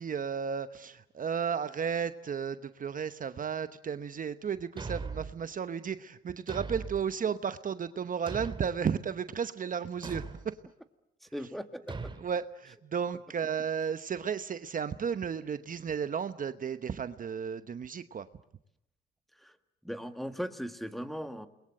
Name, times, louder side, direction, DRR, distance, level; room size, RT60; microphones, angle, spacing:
voice 1, 0.0-10.6 12.2-18.3, right 7 dB, 45° right, 12 dB, 0.9 m, -34 dB
Thump thud, 4.8-5.4 6.5-7.1 8.3-8.8 10.0-10.5 11.9-12.2, right 4 dB, 25° right, 2.3 m, -39 dB
voice 2, 11.2-11.9 19.3-19.6 19.8-21.5, equal, ahead, 8 dB, 1.8 m, -38 dB
29.0 x 21.5 x 7.8 m, 0.80 s
cardioid pair, 90°, 20 cm